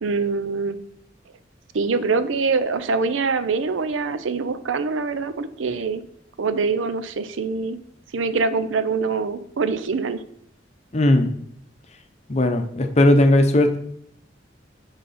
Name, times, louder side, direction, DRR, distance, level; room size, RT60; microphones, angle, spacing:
voice 1, 0.0-0.8 1.7-6.0 6.4-7.8 8.1-10.2, right 4 dB, 90° right, 12 dB, 0.6 m, -24 dB
voice 2, 10.9-11.3 12.3-13.8, left 1 dB, 35° left, 7 dB, 0.7 m, -17 dB
10.5 x 4.1 x 4.1 m, 0.70 s
head